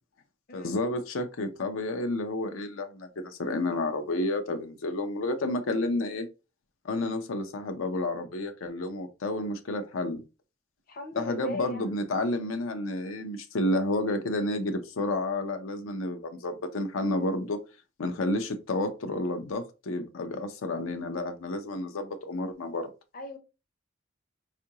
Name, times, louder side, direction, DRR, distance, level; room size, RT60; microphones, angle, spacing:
voice 1, 0.5-6.3 6.8-10.2 11.2-17.6 18.0-22.9, left 2 dB, 90° left, 0.5 m, -30 dB
voice 2, 10.9-11.9 23.1-23.4, left 2 dB, 45° left, 0.6 m, -38 dB
4.5 x 2.4 x 2.8 m
head